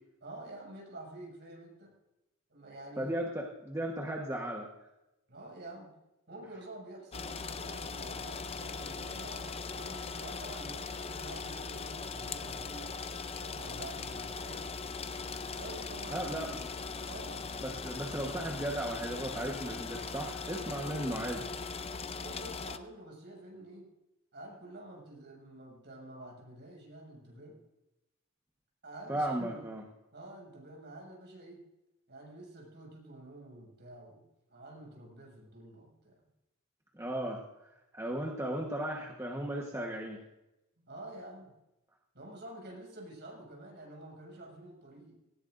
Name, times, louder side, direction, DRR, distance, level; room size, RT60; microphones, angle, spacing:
voice 1, 0.2-1.9 2.5-3.1 5.3-5.9 6.3-13.0 13.3-14.7 15.5-16.5 17.0-17.5 22.2-23.9 24.3-27.6 28.8-29.6 30.1-31.6 32.1-34.2 34.5-36.2 40.8-41.5 42.1-45.1, right 1 dB, 50° right, -2 dB, 6.4 m, -48 dB
voice 2, 3.0-4.7 16.1-16.7 17.6-21.5 29.1-29.8 36.9-40.2, right 1 dB, 15° right, -1 dB, 1.3 m, -36 dB
sound 1, 7.1-22.8, left 4 dB, 25° left, 0.6 m, -40 dB
18.5 x 18.0 x 2.6 m, 0.95 s
head